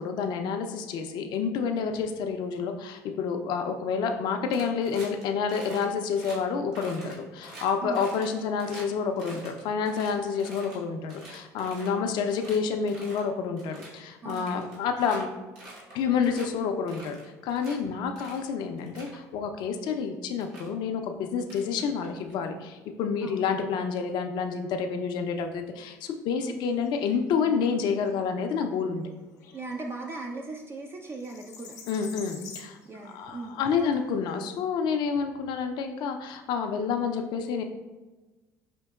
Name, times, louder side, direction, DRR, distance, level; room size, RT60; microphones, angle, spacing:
voice 1, 0.0-15.3 15.9-29.1 31.9-32.8 33.1-37.6, left 6 dB, 60° left, 5 dB, 0.4 m, -29 dB
sound 1, 4.5-5.2 5.5-5.8 6.1-6.4 6.7-8.8 9.2-10.8 11.1-12.0 12.3-12.6 12.9-13.2 13.6-13.9 14.3-15.2 15.6-15.9 16.2-16.5 16.9-17.7 18.2-18.4 18.8-19.2 20.0-20.1 20.4-20.7 21.4-22.3, right 2 dB, 75° right, 1.4 m, -46 dB
voice 2, 14.2-14.7 23.2-23.5 26.4-26.6 29.5-31.7 32.8-33.9, right 3 dB, 30° right, 2 dB, 0.4 m, -38 dB
sound 2, 26.5-34.5, left 5 dB, 85° left, 0.8 m, -50 dB
5.1 x 2.8 x 2.3 m, 1.2 s
hypercardioid pair, 70°, 8 cm